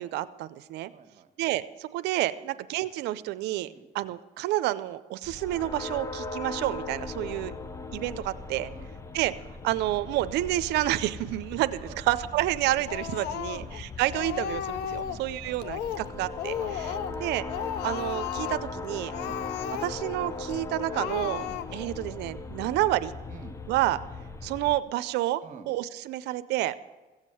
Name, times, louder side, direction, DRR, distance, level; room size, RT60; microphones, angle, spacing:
voice 1, 0.0-0.9 1.4-3.7 3.9-7.6 7.9-8.7 9.1-9.3 9.6-16.9 17.2-17.4 17.8-19.1 19.8-21.4 21.7-23.1 23.7-24.0 24.4-26.7, right 15 dB, 85° right, 13 dB, 0.6 m, -29 dB
voice 2, 0.9-1.3 3.6-3.9 7.2-7.4 8.7-8.9 11.8-12.0 13.4-13.8 15.0-15.6 16.6-16.7 19.2-19.4 21.4-21.6 23.3-23.6 25.4-25.7, right 7 dB, 45° right, 7 dB, 1.3 m, -48 dB
sound 1, 5.2-24.8, left 3 dB, 15° left, 0.7 m, -39 dB
Speech, 12.9-13.8 14.1-15.2 15.6-16.1 16.4-17.2 17.5-18.7 19.1-20.1 20.5-20.6 20.9-21.9, left 10 dB, 80° left, 0.6 m, -34 dB
15.5 x 7.4 x 7.7 m, 1.2 s
cardioid pair, 110°, 17 cm